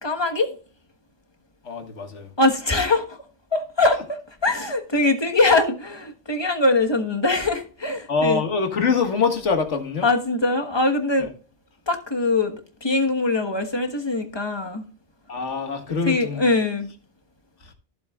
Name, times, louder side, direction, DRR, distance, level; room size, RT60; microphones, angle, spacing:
voice 1, 0.0-0.6 2.4-3.2 3.5-8.4 10.0-11.3 11.9-14.8 15.9-16.9, left 2 dB, 20° left, 1.3 m, -22 dB
voice 2, 1.6-2.3 8.1-10.1 11.2-11.3 15.3-16.4 17.6-17.7, left 5 dB, 75° left, 1.8 m, -24 dB
15.5 x 7.3 x 2.4 m
omnidirectional pair, 1.2 m